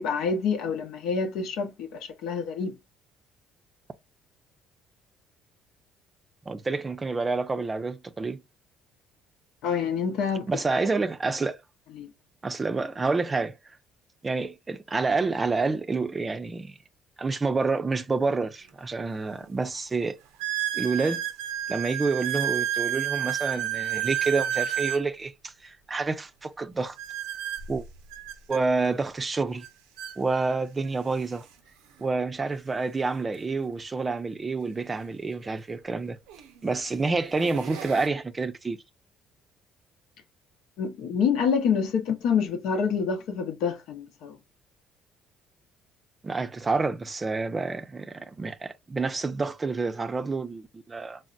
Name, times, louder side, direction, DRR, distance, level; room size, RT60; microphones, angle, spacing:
voice 1, 0.0-2.7 9.6-10.5 12.0-12.1 40.8-44.4, left 6 dB, 75° left, 0.7 m, -27 dB
voice 2, 6.5-8.4 10.5-11.6 12.4-13.6 14.2-16.7 17.2-20.2 20.7-21.2 21.7-27.0 27.7-27.8 28.5-29.7 30.2-31.4 32.0-36.2 36.6-38.8 46.2-51.2, right 3 dB, 25° right, 0.4 m, -28 dB
sound 1, 18.7-18.8 19.4-19.5 20.4-25.1 27.0-28.6 29.6-29.7 30.0-30.2 31.0-31.1 33.3-33.4 35.4-35.5 36.3-36.6 37.1-38.1, right 11 dB, 85° right, 0.5 m, -31 dB
3.9 x 2.0 x 2.3 m
supercardioid pair, 70°, 0 cm